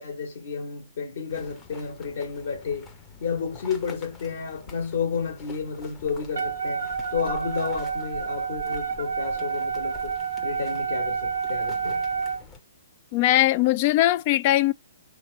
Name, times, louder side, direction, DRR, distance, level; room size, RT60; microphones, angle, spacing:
voice 1, 0.0-2.9 3.2-12.0, left 6 dB, 55° left, 1.6 m, -31 dB
sound 1, 1.3-12.6, left 4 dB, 15° left, 0.8 m, -47 dB
Wind instrument woodwind instrument, 6.3-12.4, right 6 dB, 65° right, 0.6 m, -29 dB
voice 2, 13.1-14.7, left 15 dB, 35° left, 0.3 m, -20 dB
3.6 x 3.1 x 4.0 m
figure-of-eight pair, 120°, 0 cm